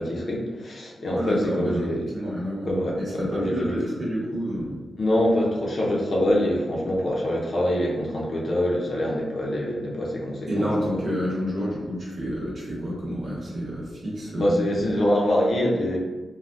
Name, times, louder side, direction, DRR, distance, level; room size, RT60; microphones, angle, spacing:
voice 1, 0.0-2.1 2.7-3.8 5.0-11.0 14.4-16.0, left 1 dB, 55° left, -3 dB, 0.6 m, -25 dB
voice 2, 1.1-1.9 2.1-2.7 3.0-4.8 10.5-14.8, equal, 45° right, -5 dB, 1.1 m, -29 dB
2.6 x 2.2 x 3.2 m, 1.2 s
wide cardioid pair, 100°, 0 cm